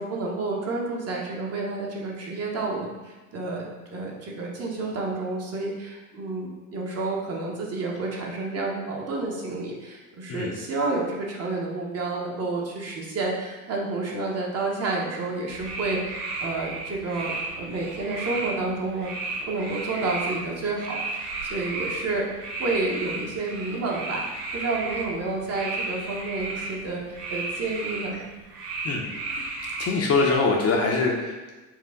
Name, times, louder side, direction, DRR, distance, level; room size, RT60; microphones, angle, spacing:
voice 1, 0.0-3.6 3.9-19.1 19.4-28.2, right 3 dB, 35° right, -2 dB, 1.0 m, -30 dB
sound 1, 15.5-30.3, right 3 dB, 85° right, 1.1 m, -34 dB
voice 2, 29.8-31.5, left 3 dB, 35° left, 0 dB, 0.7 m, -24 dB
4.5 x 2.4 x 3.7 m, 1.2 s
hypercardioid pair, 85°, 45 cm